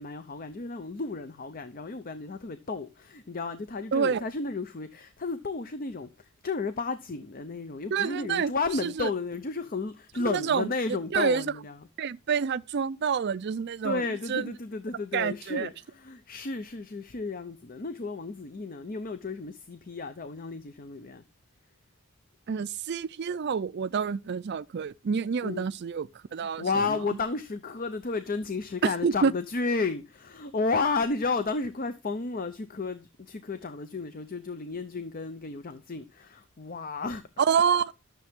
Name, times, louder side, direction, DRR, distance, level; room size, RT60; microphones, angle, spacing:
voice 1, 0.0-11.8 13.8-21.2 25.4-25.7 26.4-37.2, left 3 dB, 40° left, 0.6 m, -32 dB
voice 2, 3.9-4.2 7.9-8.5 8.8-9.1 10.2-10.7 11.1-11.4 12.0-14.0 14.3-14.5 15.1-15.7 22.5-26.6 28.8-29.3 37.4-37.9, right 6 dB, 50° right, 0.4 m, -27 dB
12.0 x 6.8 x 3.6 m
head